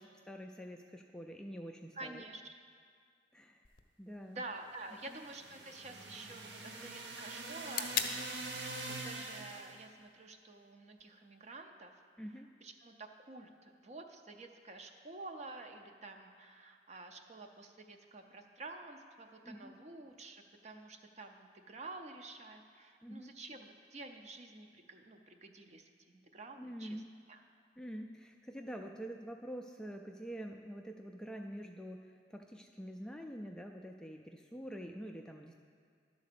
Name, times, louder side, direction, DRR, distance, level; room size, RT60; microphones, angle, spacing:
voice 1, 0.3-2.2 3.3-3.7 4.0-4.4 5.1-5.2 12.2-12.5 19.5-19.8 23.0-23.3 26.6-27.1 27.8-35.5, equal, 5° left, 2 dB, 0.3 m, -46 dB
voice 2, 1.9-2.5 4.3-8.7 9.0-11.9 12.6-27.0 27.3-27.4, right 2 dB, 40° right, 5 dB, 0.6 m, -50 dB
sound 1, 3.6-11.6, left 8 dB, 55° left, 0.6 m, -45 dB
sound 2, 4.9-9.8, right 2 dB, 75° right, 0.9 m, -45 dB
11.5 x 4.0 x 6.7 m, 2.1 s
head